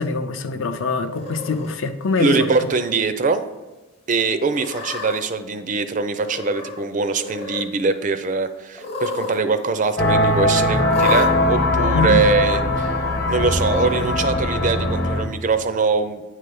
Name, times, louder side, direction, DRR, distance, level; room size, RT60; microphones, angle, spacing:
voice 1, 0.0-2.5 11.9-12.2, left 3 dB, 70° left, 8 dB, 0.6 m, -23 dB
Cat, 1.1-1.7 2.5-2.9 3.3-3.4 4.5-5.2 6.2-6.8 7.1-7.7 8.7-9.4 9.7-9.8 10.9-11.3 12.2-12.3 13.4-14.0, left 3 dB, 30° left, 0.7 m, -31 dB
voice 2, 2.2-3.4 4.1-12.9 13.3-16.2, right 4 dB, 35° right, 10 dB, 0.4 m, -22 dB
sound 1, 10.0-15.2, left 1 dB, 45° left, 1.0 m, -20 dB
9.2 x 3.3 x 5.3 m, 1.1 s
head